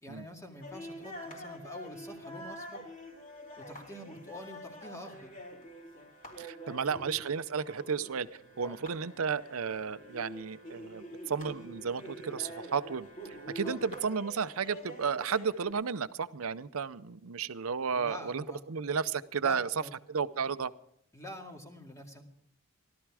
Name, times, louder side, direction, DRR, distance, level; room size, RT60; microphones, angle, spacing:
voice 1, 0.0-2.8 3.6-5.3 6.7-6.9 8.6-8.8 13.6-13.8 17.9-18.6 19.4-19.9 21.1-22.2, equal, 15° left, 2 dB, 2.2 m, -46 dB
sound 1, 0.6-15.7, equal, 40° left, 3.7 m, -46 dB
voice 2, 6.4-8.3 8.6-19.7 20.1-20.7, right 6 dB, 75° right, 15 dB, 0.6 m, -33 dB
17.0 x 12.5 x 4.8 m, 0.74 s
head